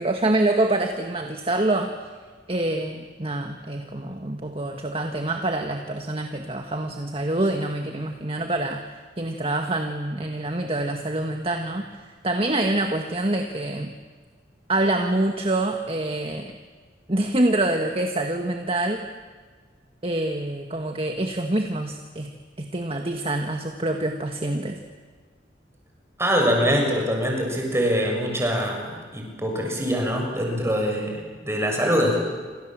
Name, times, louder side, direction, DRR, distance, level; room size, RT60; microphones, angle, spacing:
voice 1, 0.0-2.1 2.5-13.9 14.7-16.5 17.1-19.0 20.0-22.3 22.6-24.8, right 2 dB, 30° right, 4 dB, 1.8 m, -26 dB
voice 2, 26.2-32.2, equal, 15° right, 1 dB, 6.7 m, -24 dB
29.0 x 26.5 x 7.7 m, 1.5 s
head